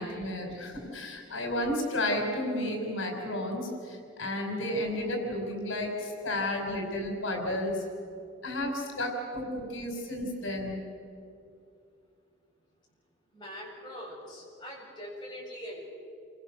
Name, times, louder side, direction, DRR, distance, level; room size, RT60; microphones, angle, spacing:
voice 1, 0.0-7.8 8.4-10.8, left 1 dB, 85° left, 2 dB, 4.9 m, -32 dB
voice 2, 13.3-15.9, equal, 25° left, -4 dB, 7.7 m, -42 dB
29.0 x 25.5 x 6.6 m, 2.5 s
head